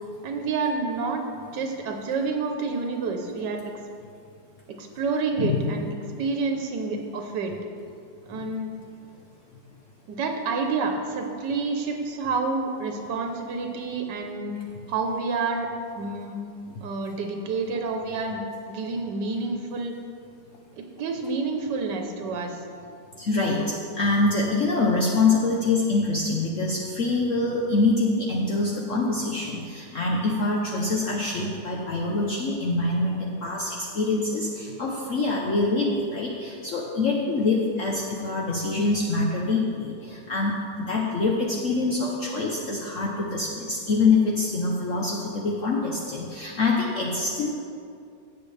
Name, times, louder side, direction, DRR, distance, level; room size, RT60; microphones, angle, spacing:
voice 1, 0.2-1.2 1.5-3.6 4.7-5.9 6.2-7.5 8.3-8.7 10.1-14.5 14.9-15.7 16.0-16.4 16.8-18.4 18.7-19.9 20.8-22.6, right 4 dB, 85° right, 3 dB, 1.5 m, -28 dB
voice 2, 23.2-47.5, left 3 dB, 55° left, -2 dB, 1.1 m, -25 dB
16.5 x 7.1 x 3.3 m, 2.4 s
omnidirectional pair, 1.8 m